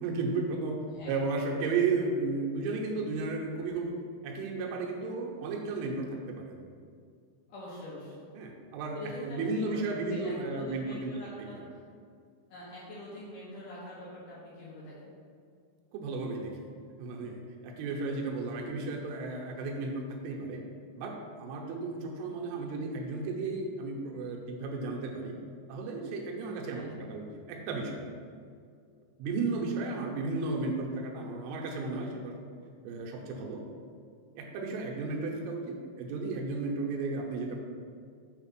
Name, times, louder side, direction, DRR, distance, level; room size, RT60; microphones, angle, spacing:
voice 1, 0.0-3.9 4.2-6.6 8.3-11.1 11.4-11.5 15.9-16.7 17.0-20.6 21.0-25.4 25.7-28.1 29.2-32.4 32.8-33.6 34.4-37.6, right 3 dB, 80° right, 0 dB, 3.2 m, -34 dB
voice 2, 0.9-1.3 7.5-8.2 8.9-11.8 12.5-15.1 26.6-26.9, left 1 dB, 85° left, -9 dB, 1.8 m, -44 dB
7.0 x 3.4 x 6.0 m, 2.2 s
omnidirectional pair, 5.7 m